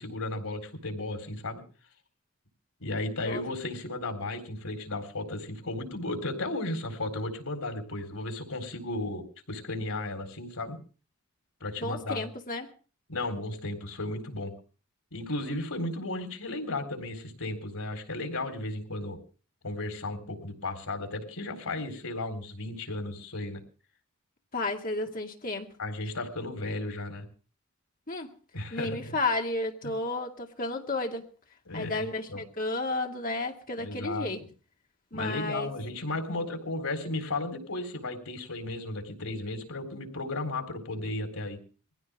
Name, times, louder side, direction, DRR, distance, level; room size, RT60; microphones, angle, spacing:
voice 1, 0.0-1.6 2.8-10.8 11.6-12.2 13.1-14.5 15.1-19.2 19.6-23.6 25.8-27.3 28.5-29.2 31.7-32.4 33.8-34.3 35.1-41.6, left 2 dB, 90° left, 4.1 m, -34 dB
voice 2, 11.8-12.7 24.5-25.7 28.1-28.3 28.7-31.3 31.7-34.4 35.1-35.7, left 2 dB, 40° left, 2.2 m, -32 dB
22.0 x 16.0 x 3.6 m
head